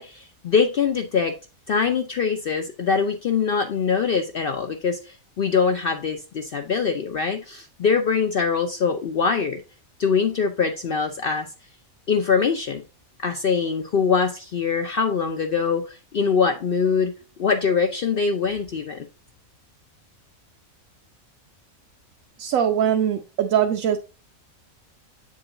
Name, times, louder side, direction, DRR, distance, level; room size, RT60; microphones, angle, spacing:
voice 1, 0.0-1.4 1.7-9.6 10.0-11.5 12.1-12.8 13.2-17.1 17.4-19.1, left 5 dB, 60° left, 0.6 m, -23 dB
voice 2, 22.4-24.0, right 9 dB, 75° right, 1.0 m, -21 dB
7.8 x 3.7 x 3.7 m
omnidirectional pair, 1.5 m